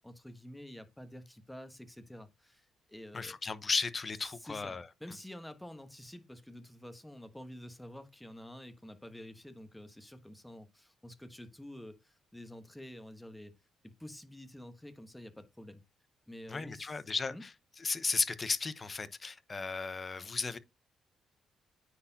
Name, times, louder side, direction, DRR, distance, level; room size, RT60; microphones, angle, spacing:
voice 1, 0.0-3.4 4.4-13.6 13.8-15.8 16.3-17.0 17.3-17.4, left 1 dB, 5° left, 1.2 m, -49 dB
voice 2, 3.1-4.9 16.5-17.5 17.8-20.6, left 4 dB, 30° left, 0.8 m, -35 dB
9.4 x 4.2 x 2.7 m
cardioid pair, 90°, 0 cm